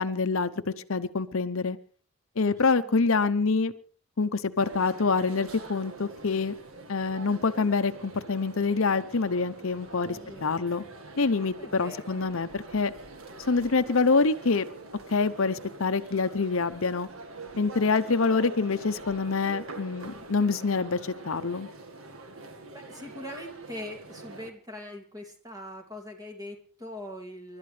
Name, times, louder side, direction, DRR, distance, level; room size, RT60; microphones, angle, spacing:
voice 1, 0.0-1.8 2.4-3.7 4.2-6.5 6.9-10.8 11.2-12.9 13.5-14.7 15.1-17.1 17.6-21.7, left 4 dB, 70° left, 11 dB, 0.8 m, -26 dB
voice 2, 2.4-2.9 10.0-10.6 11.6-12.2 22.7-27.6, left 1 dB, 15° right, 3 dB, 2.5 m, -42 dB
sound 1, 4.6-24.5, right 3 dB, 70° right, 1.8 m, -44 dB
29.5 x 12.5 x 3.3 m, 0.42 s
head